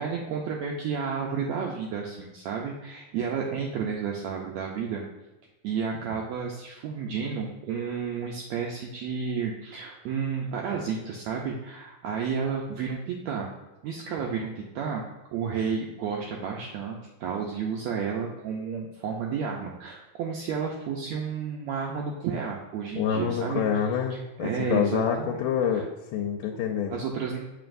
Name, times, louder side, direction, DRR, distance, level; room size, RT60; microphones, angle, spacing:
voice 1, 0.0-5.0 5.6-13.5 13.8-15.1 15.3-23.6 24.1-25.4 25.7-25.8 26.9-27.4, right 6 dB, 85° right, 0 dB, 1.5 m, -31 dB
voice 2, 23.0-25.9 26.1-27.0, left 8 dB, 90° left, 2 dB, 2.2 m, -27 dB
7.8 x 4.7 x 2.5 m, 1.0 s
omnidirectional pair, 3.8 m